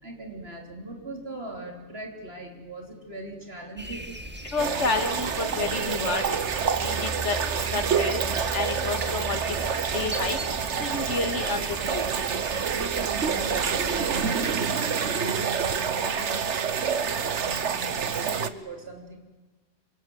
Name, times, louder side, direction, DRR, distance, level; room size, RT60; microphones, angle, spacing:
voice 1, 0.0-4.2 12.7-19.2, right 2 dB, 60° right, 2 dB, 4.1 m, -39 dB
sound 1, 3.8-14.6, right 1 dB, 10° right, 1.8 m, -38 dB
voice 2, 4.5-6.5 6.8-8.2 8.5-9.4 9.9-10.4 10.8-12.1, left 3 dB, 85° left, 6 dB, 2.7 m, -30 dB
sound 2, 4.6-18.5, right 6 dB, 90° right, 1.4 m, -27 dB
26.5 x 26.0 x 8.1 m, 1.3 s
omnidirectional pair, 1.2 m